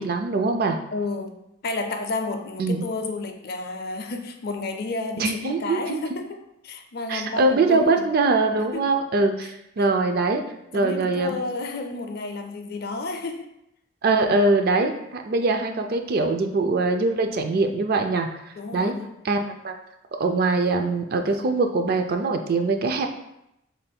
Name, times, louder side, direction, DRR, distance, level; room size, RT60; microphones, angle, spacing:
voice 1, 0.0-0.8 2.6-2.8 5.2-6.0 7.1-10.4 10.7-11.4 14.0-18.3 18.7-18.9 19.2-19.7 20.2-23.1, right 3 dB, 50° right, 5 dB, 0.3 m, -22 dB
voice 2, 0.9-1.4 1.6-6.4 6.6-8.1 8.7-8.9 9.4-9.5 10.7-13.5 18.6-19.2, left 3 dB, 50° left, 5 dB, 0.4 m, -31 dB
5.1 x 3.3 x 2.2 m, 0.83 s
head